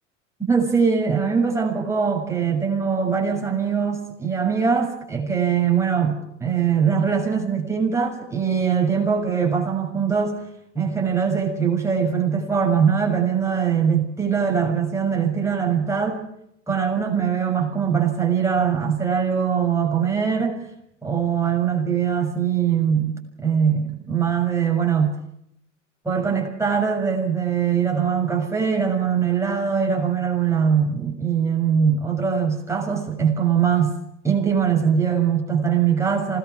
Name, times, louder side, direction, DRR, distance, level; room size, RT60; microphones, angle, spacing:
voice 1, 0.5-10.4 10.7-16.2 16.7-20.6 21.0-25.1 26.0-33.9 34.2-36.4, right 7 dB, 5° right, -1 dB, 6.6 m, -22 dB
27.5 x 19.5 x 6.2 m, 0.76 s
hypercardioid pair, 90°, 38 cm